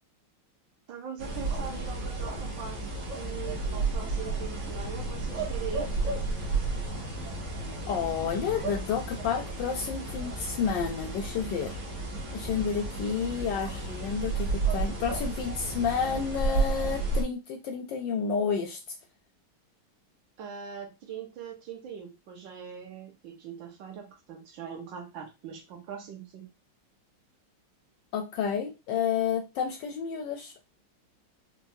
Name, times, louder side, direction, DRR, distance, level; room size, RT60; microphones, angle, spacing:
voice 1, 0.9-2.8 3.1-5.9 20.4-26.5, right 7 dB, 70° right, 3 dB, 1.4 m, -41 dB
sound 1, 1.2-17.2, right 3 dB, 50° right, 1.0 m, -32 dB
voice 2, 7.9-11.8 12.3-19.0 28.1-30.5, left 6 dB, 75° left, 4 dB, 1.1 m, -30 dB
4.5 x 2.1 x 2.6 m, 0.26 s
omnidirectional pair, 2.3 m